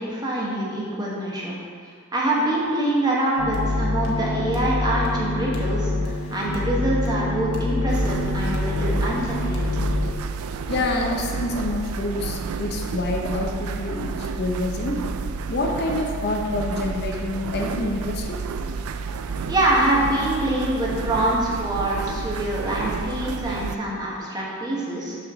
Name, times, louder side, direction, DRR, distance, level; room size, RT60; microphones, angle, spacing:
voice 1, 0.0-1.6 2.1-9.8 19.5-25.2, right 1 dB, 20° right, -5 dB, 1.0 m, -25 dB
sound 1, 3.4-10.1, left 2 dB, 85° left, 1.0 m, -26 dB
sound 2, 7.9-23.8, right 5 dB, 90° right, 0.3 m, -30 dB
voice 2, 10.7-15.0 15.5-18.4, left 2 dB, 50° left, 1 dB, 0.6 m, -27 dB
6.2 x 3.2 x 5.9 m, 2.1 s
head